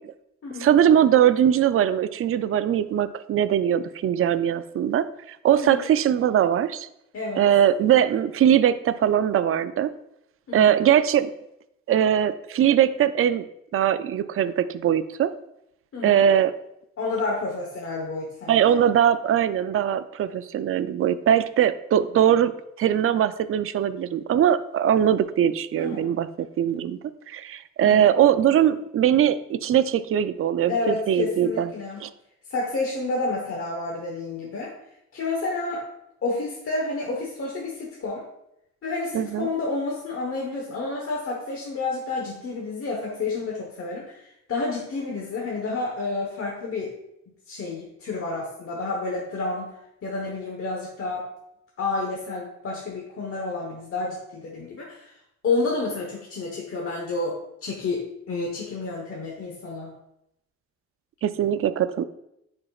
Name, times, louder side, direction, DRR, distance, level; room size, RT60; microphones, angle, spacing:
voice 1, 0.6-6.9 7.4-9.9 10.5-11.3 11.9-13.4 13.7-15.3 16.0-16.5 18.5-22.5 22.8-26.3 26.6-27.0 27.3-31.7 32.0-32.1 39.1-39.5 61.2-62.0, right 10 dB, 50° right, 13 dB, 0.4 m, -21 dB
voice 2, 7.1-7.5 10.5-10.8 15.9-16.2 17.0-18.8 25.8-26.1 27.8-28.1 30.7-32.0 32.5-34.7 35.1-35.8 36.2-38.2 38.8-47.0 47.5-49.7 50.0-51.3 51.8-55.1 55.4-59.9, left 3 dB, 50° left, -2 dB, 1.2 m, -30 dB
9.6 x 4.4 x 2.4 m, 0.82 s
cardioid pair, 90°, 30 cm